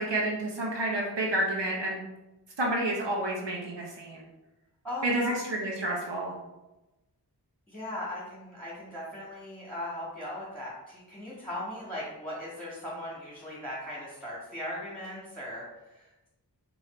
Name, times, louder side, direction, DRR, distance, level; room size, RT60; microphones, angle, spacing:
voice 1, 0.0-2.0 2.6-4.2 5.0-6.3, right 1 dB, 85° right, -2 dB, 1.1 m, -29 dB
voice 2, 4.8-5.4 7.7-16.3, left 1 dB, 5° left, -6 dB, 1.9 m, -38 dB
4.9 x 4.5 x 4.4 m, 1.0 s
wide cardioid pair, 55°, 41 cm